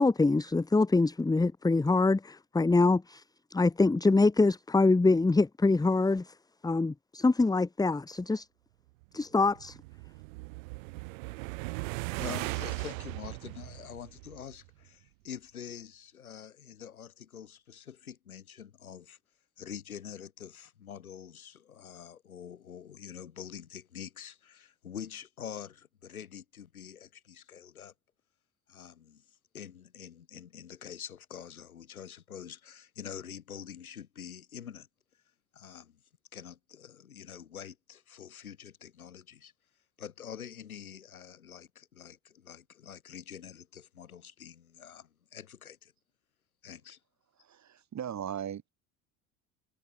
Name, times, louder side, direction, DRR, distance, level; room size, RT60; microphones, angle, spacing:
voice 1, 0.0-3.2 3.5-6.3 6.6-8.5 9.1-9.8, left 3 dB, 10° left, 1.0 m, -25 dB
sound 1, 9.2-14.7, right 26 dB, 65° right, 1.2 m, -38 dB
voice 2, 11.7-19.2 19.6-27.9 28.7-29.2 29.5-34.9 35.5-36.0 36.3-39.5 40.0-45.9 46.6-47.0, left 8 dB, 85° left, 3.4 m, -46 dB
voice 3, 47.4-48.7, right 9 dB, 40° right, 5.7 m, -38 dB
figure-of-eight pair, 65°, 42 cm